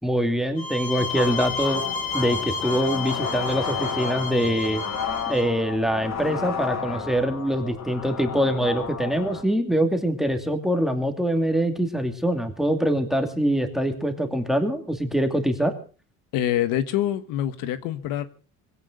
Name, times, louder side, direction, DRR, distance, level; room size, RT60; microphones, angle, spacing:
voice 1, 0.0-1.8 2.1-4.8 5.3-15.7, equal, ahead, 2.6 m, -24 dB
sound 1, 0.6-5.5, left 4 dB, 25° left, 4.1 m, -31 dB
sound 2, 1.0-9.4, left 6 dB, 50° left, 6.2 m, -32 dB
voice 2, 16.3-18.3, left 12 dB, 70° left, 1.4 m, -25 dB
21.5 x 16.5 x 3.9 m
cardioid pair, 145°, 35 cm